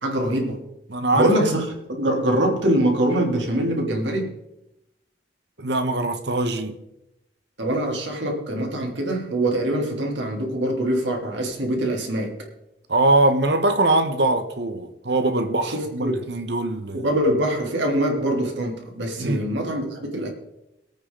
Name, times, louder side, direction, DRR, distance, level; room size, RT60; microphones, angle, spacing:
voice 1, 0.0-0.6 1.1-4.3 7.6-12.3 15.6-16.2 16.9-20.3, right 1 dB, 90° right, 3.3 m, -23 dB
voice 2, 0.9-1.6 5.6-6.7 12.9-17.0 19.2-19.5, right 2 dB, 75° right, 1.3 m, -22 dB
22.5 x 9.0 x 4.0 m
head